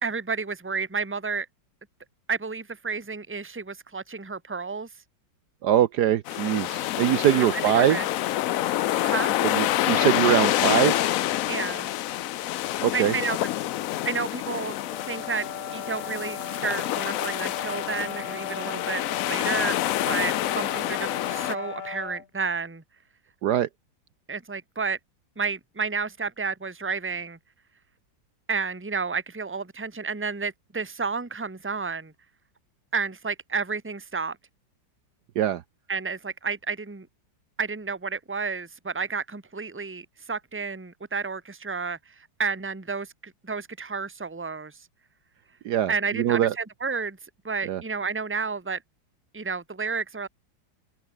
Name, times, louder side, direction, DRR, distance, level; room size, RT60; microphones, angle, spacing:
voice 1, 0.0-1.5 2.3-4.9 7.3-8.1 9.0-9.3 11.5-11.9 12.9-13.4 14.0-14.8 15.1-22.8 24.3-25.0 25.4-27.4 28.5-32.1 32.9-34.4 35.9-37.1 37.6-44.8 45.9-47.2 47.4-48.8 49.3-50.3, right 5 dB, 5° right, 1.2 m, -31 dB
voice 2, 5.6-8.0 9.4-11.0 12.8-13.1 23.4-23.7 35.4-35.6 45.6-46.5 47.7-47.8, right 11 dB, 65° right, 1.2 m, -22 dB
sound 1, 6.3-21.5, left 14 dB, 85° left, 0.7 m, -27 dB
sound 2, 14.8-22.3, left 6 dB, 40° left, 1.2 m, -37 dB
open air
omnidirectional pair, 2.0 m